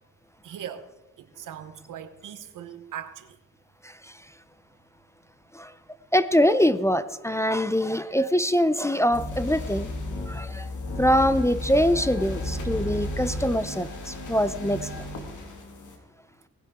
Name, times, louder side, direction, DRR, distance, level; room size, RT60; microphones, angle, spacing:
voice 1, 0.4-0.9 1.2-3.4, right 9 dB, 90° right, 1.0 m, -39 dB
voice 2, 6.1-9.9 10.3-10.7 11.0-15.0, equal, 10° left, 0.4 m, -23 dB
sound 1, 9.1-16.0, left 1 dB, 70° left, 2.1 m, -33 dB
18.5 x 10.5 x 3.6 m
cardioid pair, 100°, 31 cm